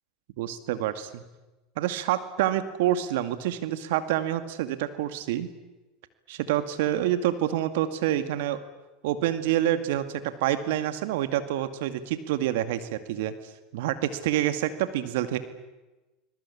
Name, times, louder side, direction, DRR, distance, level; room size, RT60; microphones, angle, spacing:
voice 1, 0.4-1.2 1.8-5.5 6.3-8.6 9.0-13.3 13.7-15.4, right 12 dB, 75° right, 11 dB, 2.2 m, -27 dB
26.5 x 21.5 x 8.6 m, 1.1 s
hypercardioid pair, 95°, 0 cm